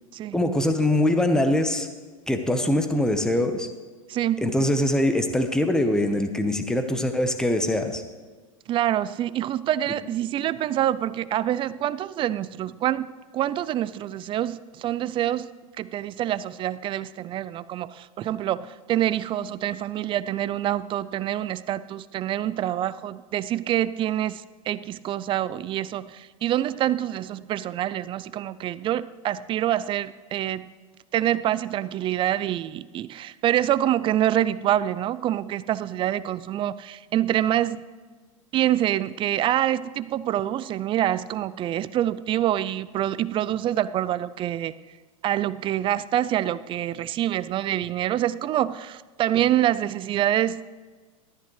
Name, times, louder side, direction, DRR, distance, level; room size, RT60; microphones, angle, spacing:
voice 1, 0.3-1.9 2.3-3.7 4.4-8.0, left 1 dB, 5° left, 7 dB, 1.0 m, -23 dB
voice 2, 4.1-4.5 8.7-15.5 15.8-30.7 31.1-37.8 38.5-44.7 45.2-50.6, right 12 dB, 30° right, 17 dB, 0.4 m, -26 dB
14.0 x 12.5 x 3.2 m, 1.4 s
hypercardioid pair, 110°, 18 cm